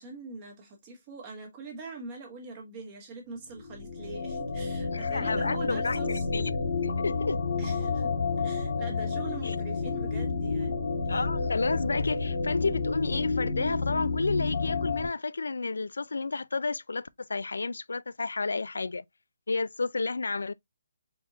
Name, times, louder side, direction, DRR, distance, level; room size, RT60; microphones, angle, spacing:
voice 1, 0.0-6.2 7.6-11.2, right 4 dB, 20° right, 1.2 m, -43 dB
sound 1, 3.5-15.1, left 4 dB, 60° left, 1.1 m, -30 dB
voice 2, 4.9-6.6 7.0-7.4 9.4-9.5 11.1-19.0 19.5-20.5, left 3 dB, 85° left, 0.4 m, -31 dB
4.4 x 3.5 x 2.6 m
hypercardioid pair, 175°, 0 cm